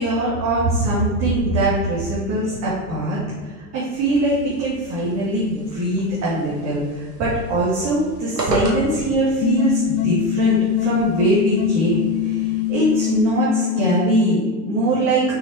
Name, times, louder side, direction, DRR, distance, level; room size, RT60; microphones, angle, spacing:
voice 1, 0.0-15.2, right 1 dB, 35° right, -7 dB, 2.4 m, -21 dB
sound 1, 3.9-13.1, right 2 dB, 90° right, 1.7 m, -35 dB
sound 2, 9.4-14.4, left 15 dB, 30° left, 0.5 m, -23 dB
6.4 x 6.0 x 4.7 m, 1.5 s
figure-of-eight pair, 90°, 47 cm